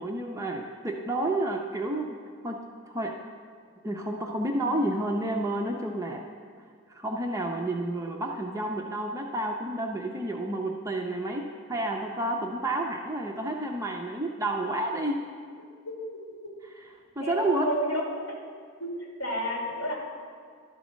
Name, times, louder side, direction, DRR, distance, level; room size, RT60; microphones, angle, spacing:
voice 1, 0.0-2.2 2.4-3.2 3.8-6.2 6.9-15.2 17.2-17.7, right 1 dB, 15° right, 0 dB, 0.5 m, -30 dB
voice 2, 15.8-16.3 17.2-18.0 18.8-18.9 19.2-19.9, equal, 60° left, -3 dB, 2.4 m, -31 dB
11.5 x 4.1 x 6.2 m, 2.2 s
head